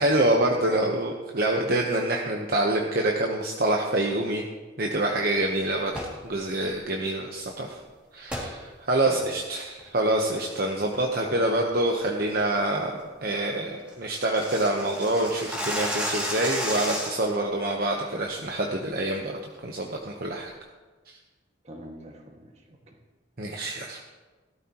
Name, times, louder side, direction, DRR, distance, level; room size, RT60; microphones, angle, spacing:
voice 1, 0.0-4.5 4.8-5.9 6.2-7.8 8.1-20.5 23.4-24.0, right 1 dB, 50° right, 0 dB, 1.0 m, -26 dB
sound 1, 5.9-6.2 8.3-8.5 9.0-9.1 9.6-9.9 10.3-10.6 10.9-11.2 11.6-11.7 12.1-12.3 12.7-12.8 13.1-13.2 13.4-13.5 13.7-17.4, equal, 5° right, 2.4 m, -32 dB
voice 2, 21.6-23.0, equal, 35° right, 1 dB, 1.9 m, -43 dB
18.0 x 12.5 x 3.0 m, 1.3 s
head